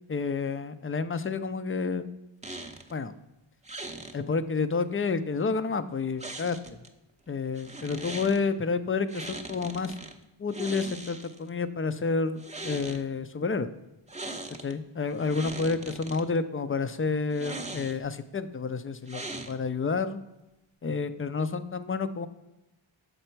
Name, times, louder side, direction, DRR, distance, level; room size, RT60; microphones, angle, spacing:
voice 1, 0.1-2.1 2.9-3.1 4.1-6.8 7.3-10.0 10.4-13.7 14.6-20.2 20.8-22.3, left 4 dB, 30° left, 12 dB, 0.4 m, -30 dB
sound 1, 2.4-2.9 3.6-4.2 6.2-6.9 7.5-8.4 9.1-10.1 10.5-11.5 12.3-13.0 14.1-14.7 15.1-16.2 17.3-18.1 19.1-19.8, right 2 dB, 15° right, 0.6 m, -40 dB
6.6 x 4.3 x 4.4 m, 0.95 s
wide cardioid pair, 65°, 49 cm